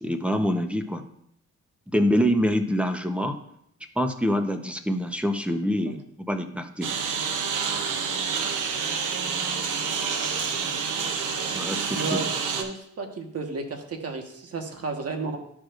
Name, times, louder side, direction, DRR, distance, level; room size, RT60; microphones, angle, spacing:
voice 1, 0.0-1.0 1.9-3.4 4.0-6.9 11.5-12.2, equal, 5° right, 6 dB, 0.9 m, -25 dB
Engine, 6.8-12.6, right 6 dB, 75° right, 0.9 m, -28 dB
voice 2, 11.9-12.3 12.6-15.4, right 3 dB, 50° right, 3 dB, 1.5 m, -32 dB
12.0 x 4.8 x 2.6 m, 0.71 s
cardioid pair, 70°, 31 cm